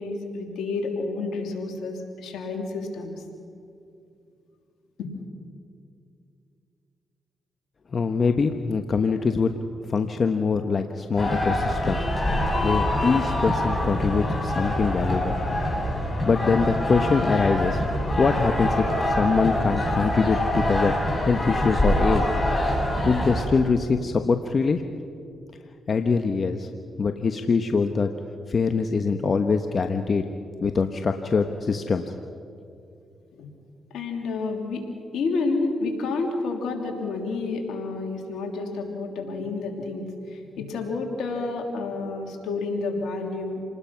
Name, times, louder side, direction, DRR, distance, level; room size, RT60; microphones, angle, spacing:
voice 1, 0.0-3.2 5.0-5.1 33.3-33.5 33.9-34.8 35.1-43.6, left 3 dB, 80° left, 3 dB, 3.1 m, -30 dB
voice 2, 7.9-9.5 9.8-12.0 12.6-15.4 16.2-17.8 18.2-20.9 21.2-22.3 23.0-24.8 25.9-26.7 27.0-28.1 28.5-30.3 30.6-32.0, left 5 dB, 50° left, 7 dB, 1.1 m, -23 dB
sound 1, 11.2-23.5, left 1 dB, 30° left, 7.5 m, -25 dB
28.0 x 19.5 x 5.9 m, 2.5 s
supercardioid pair, 55°, 0 cm